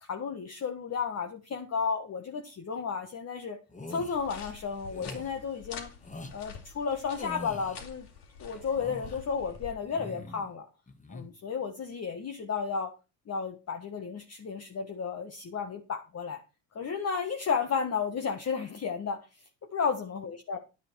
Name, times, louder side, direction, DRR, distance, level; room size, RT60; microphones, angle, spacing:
voice 1, 0.0-3.6 3.9-5.9 6.3-8.1 8.4-10.6 11.1-12.9 13.3-16.4 16.7-19.2 19.7-20.6, left 6 dB, 35° left, 4 dB, 1.6 m, -33 dB
sound 1, 3.7-4.2 4.9-5.3 6.0-6.3 7.2-7.8 8.5-9.2 9.8-10.5 10.9-11.3, left 2 dB, 15° left, 1.9 m, -43 dB
sound 2, 4.1-9.7, left 6 dB, 65° left, 3.7 m, -47 dB
10.5 x 9.0 x 4.7 m, 0.29 s
cardioid pair, 105°, 43 cm